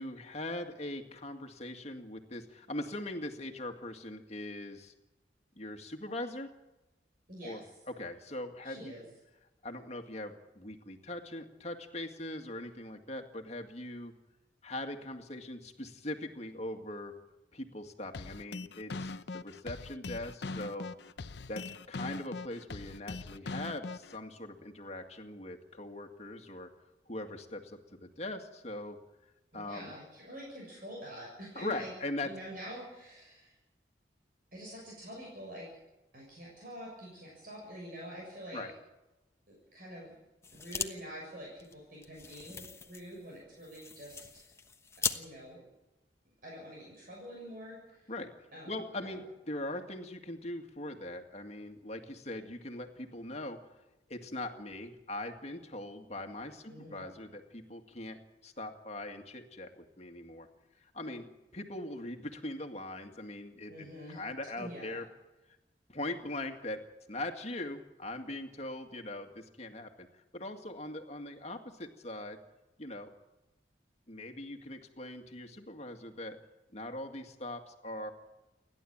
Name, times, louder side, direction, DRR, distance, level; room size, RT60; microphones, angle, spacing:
voice 1, 0.0-4.9 5.6-6.5 7.4-9.0 9.6-14.1 14.6-17.1 17.5-20.9 21.5-26.7 27.1-29.0 29.5-29.9 31.6-32.3 38.5-38.7 48.1-53.6 54.1-60.5 60.8-65.1 65.9-72.4 72.8-73.1 74.1-76.4 76.7-78.1, left 1 dB, 40° left, 4 dB, 2.1 m, -41 dB
voice 2, 7.3-7.7 8.6-9.0 29.5-31.9 32.2-33.6 34.5-35.7 36.1-38.6 39.5-40.2 40.5-44.5 45.1-45.6 46.4-48.1 48.5-49.2 56.7-57.0 63.7-64.2 64.6-65.0, equal, 55° right, -3 dB, 7.0 m, -46 dB
sound 1, 18.1-24.2, left 3 dB, 75° left, 0.7 m, -41 dB
sound 2, 40.4-40.9 41.2-41.3 41.6-45.2, left 5 dB, 15° left, 1.2 m, -39 dB
29.5 x 11.5 x 8.9 m, 1.0 s
head